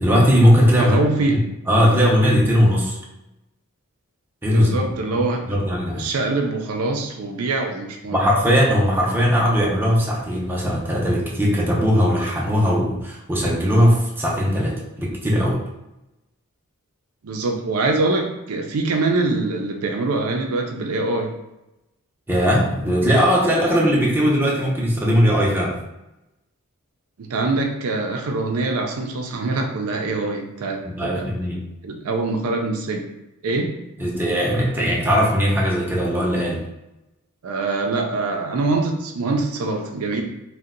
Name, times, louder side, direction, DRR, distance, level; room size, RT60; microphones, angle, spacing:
voice 1, 0.0-1.0 1.3-1.4 1.7-3.0 4.4-4.8 5.1-6.1 8.1-15.6 22.3-25.8 30.8-31.6 34.0-36.6, equal, 10° right, -4 dB, 0.6 m, -19 dB
voice 2, 0.8-1.4 4.5-5.6 5.9-8.2 17.2-21.3 27.2-31.3 31.8-33.1 33.4-33.7 37.4-40.2, right 3 dB, 75° right, 3 dB, 0.4 m, -24 dB
2.7 x 2.2 x 3.7 m, 0.92 s
head